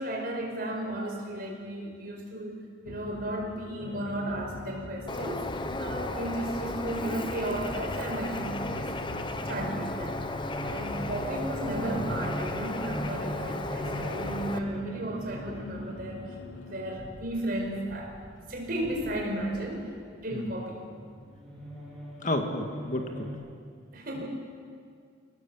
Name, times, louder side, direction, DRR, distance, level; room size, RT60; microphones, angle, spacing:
voice 1, 0.0-5.5 5.8-8.9 9.2-10.2 10.6-16.3 16.5-18.2 18.5-20.8 23.9-24.3, right 1 dB, 50° right, 0 dB, 4.9 m, -34 dB
sound 1, 2.9-17.0, left 1 dB, 75° left, 1.7 m, -43 dB
sound 2, 3.8-23.3, equal, 5° left, 6.4 m, -43 dB
Bird, 5.1-14.6, left 2 dB, 25° left, 1.0 m, -35 dB
voice 2, 22.2-23.3, left 1 dB, 40° left, 4 dB, 1.9 m, -31 dB
23.5 x 18.5 x 7.4 m, 2.2 s
head